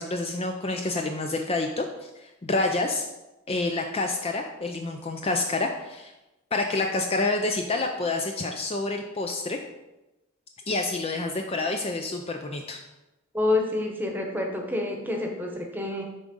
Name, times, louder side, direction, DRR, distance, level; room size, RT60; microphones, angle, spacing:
voice 1, 0.0-3.1 3.5-6.1 6.5-9.6 10.7-12.8, left 2 dB, 30° left, 4 dB, 0.4 m, -28 dB
voice 2, 13.3-16.0, left 2 dB, 10° right, 1 dB, 1.0 m, -28 dB
8.2 x 3.7 x 5.3 m, 1.0 s
head